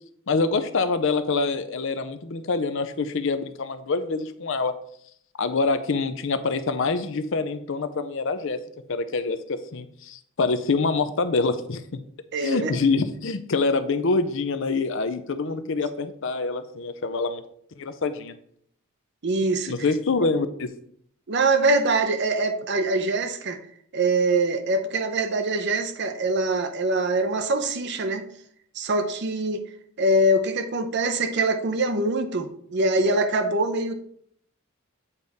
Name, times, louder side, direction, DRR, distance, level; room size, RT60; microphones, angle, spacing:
voice 1, 0.3-4.7 5.4-8.6 8.9-11.8 12.4-17.4 17.8-18.3 19.7-20.7, left 4 dB, 60° left, 11 dB, 0.5 m, -25 dB
voice 2, 12.3-12.8 15.7-15.8 19.2-19.7 21.3-23.6 23.9-28.3 28.7-29.6 30.0-33.9, right 2 dB, 55° right, 7 dB, 0.7 m, -23 dB
8.1 x 3.5 x 4.0 m, 0.66 s
head